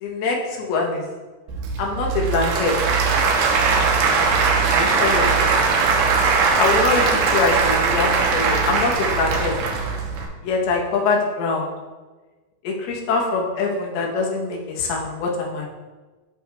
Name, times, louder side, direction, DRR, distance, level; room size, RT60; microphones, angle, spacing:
voice 1, 0.0-1.0 1.8-2.7 4.7-5.3 6.6-9.5 10.4-11.7 12.6-15.7, left 3 dB, 85° left, 0 dB, 2.9 m, -23 dB
Applause / Crowd, 1.5-10.3, right 4 dB, 80° right, 2.7 m, -20 dB
12.5 x 4.9 x 2.3 m, 1.3 s
omnidirectional pair, 4.4 m